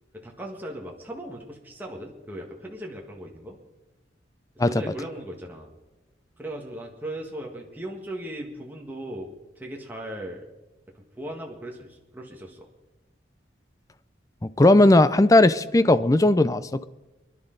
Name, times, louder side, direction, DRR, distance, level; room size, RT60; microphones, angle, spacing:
voice 1, 0.1-3.6 4.7-5.7 6.4-10.5 11.2-12.7, right 1 dB, 10° right, -1 dB, 1.6 m, -38 dB
voice 2, 14.6-16.8, left 2 dB, 20° left, 14 dB, 0.4 m, -17 dB
25.0 x 11.0 x 3.9 m, 1.1 s
head